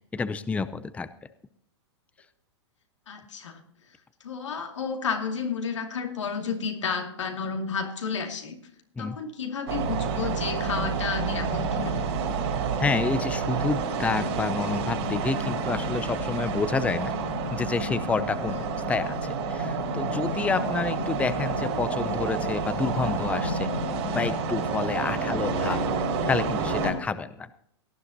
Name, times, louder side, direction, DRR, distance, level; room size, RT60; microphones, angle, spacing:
voice 1, 0.1-1.1 9.0-9.2 12.8-17.1 17.5-23.7 24.1-27.5, left 4 dB, 10° left, 13 dB, 0.5 m, -29 dB
voice 2, 3.1-3.6 4.2-8.6 9.0-12.0 18.5-18.6, left 5 dB, 90° left, 3 dB, 2.6 m, -32 dB
sound 1, 9.7-26.9, right 4 dB, 60° right, 5.3 m, -29 dB
18.0 x 11.0 x 2.9 m, 0.69 s
hypercardioid pair, 125°, 15 cm